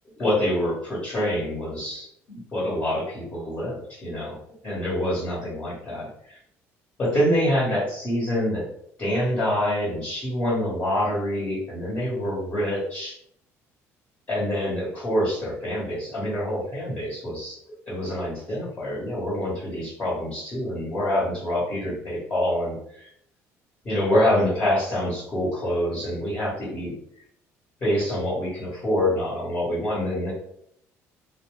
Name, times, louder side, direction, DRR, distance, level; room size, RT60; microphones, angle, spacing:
voice 1, 0.2-4.4 4.6-6.4 7.0-8.7 9.0-13.1 14.3-17.6 17.9-23.1 23.8-26.9 27.8-30.3, left 1 dB, 30° left, -7 dB, 1.2 m, -26 dB
2.7 x 2.0 x 3.1 m, 0.69 s
cardioid pair, 155°, 6 cm